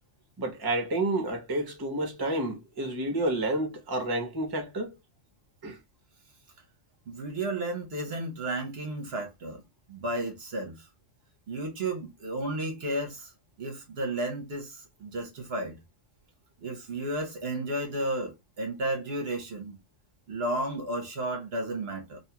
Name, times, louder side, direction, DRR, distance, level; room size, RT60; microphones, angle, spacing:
voice 1, 0.4-4.9 5.6-5.8, right 2 dB, 25° right, 0.7 m, -30 dB
voice 2, 7.1-9.6 9.9-10.9 11.5-13.3 13.6-15.8 16.6-19.8 20.3-22.2, right 1 dB, 60° right, 0.9 m, -33 dB
2.6 x 2.3 x 2.7 m
omnidirectional pair, 1.3 m